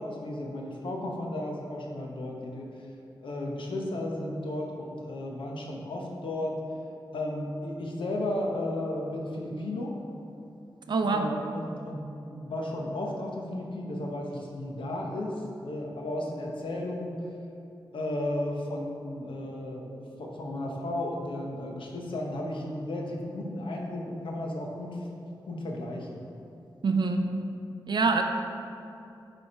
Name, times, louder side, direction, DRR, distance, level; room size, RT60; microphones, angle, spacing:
voice 1, 0.0-2.7 3.2-6.6 7.1-10.0 11.0-17.2 17.9-25.0 25.4-26.2, left 1 dB, 85° left, 0 dB, 0.9 m, -34 dB
voice 2, 10.9-11.3 26.8-27.3 27.9-28.2, right 4 dB, 65° right, 5 dB, 0.5 m, -25 dB
9.0 x 3.5 x 4.2 m, 2.7 s
wide cardioid pair, 135°, 8 cm